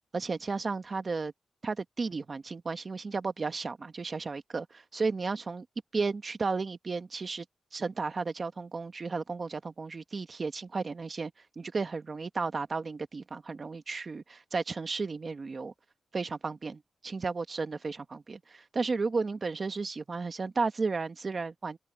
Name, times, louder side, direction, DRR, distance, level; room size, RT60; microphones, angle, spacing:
voice 1, 0.1-1.3 1.6-5.6 5.9-7.4 7.7-11.3 11.6-15.7 16.1-21.8, right 4 dB, 40° right, 1.3 m, -33 dB
wide cardioid pair, 120°, 0 cm